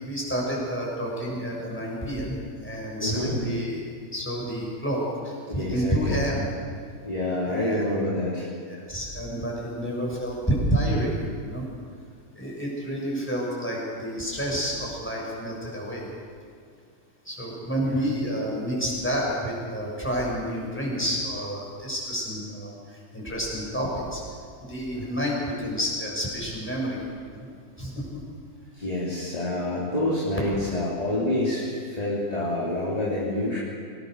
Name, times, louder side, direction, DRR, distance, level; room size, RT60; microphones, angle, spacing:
voice 1, 0.0-2.4 2.6-3.8 4.1-6.5 7.5-7.9 8.7-11.7 12.4-16.1 17.3-22.7 23.1-24.2 24.7-27.0 27.3-27.5 27.8-27.9, equal, 10° left, -3 dB, 7.1 m, -29 dB
voice 2, 3.0-3.3 5.5-6.2 7.0-8.5 17.8-18.0 24.9-25.1 28.7-33.6, left 1 dB, 25° left, -7 dB, 3.8 m, -27 dB
26.0 x 20.0 x 6.7 m, 2.2 s
omnidirectional pair, 1.6 m